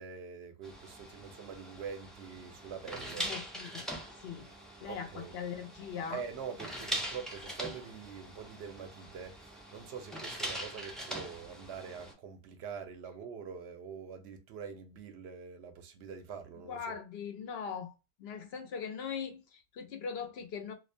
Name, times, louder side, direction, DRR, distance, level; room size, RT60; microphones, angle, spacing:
voice 1, 0.0-3.3 4.9-5.3 6.1-16.9, right 6 dB, 85° right, 0.9 m, -44 dB
sound 1, 0.6-12.1, right 1 dB, ahead, 0.4 m, -42 dB
voice 2, 3.2-3.9 4.2-4.5 4.8-6.2 16.6-17.9 18.2-20.7, left 6 dB, 75° left, 0.9 m, -40 dB
2.4 x 2.1 x 2.5 m
omnidirectional pair, 1.1 m